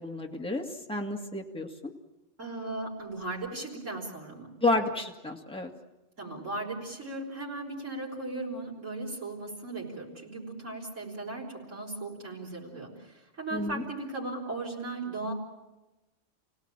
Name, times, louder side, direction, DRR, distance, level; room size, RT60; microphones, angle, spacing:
voice 1, 0.0-1.9 4.6-5.7 13.5-13.8, left 2 dB, 5° left, 1 dB, 2.0 m, -31 dB
voice 2, 2.4-4.5 6.2-15.3, right 2 dB, 85° right, -4 dB, 5.2 m, -37 dB
29.5 x 18.0 x 9.1 m, 1.1 s
omnidirectional pair, 1.3 m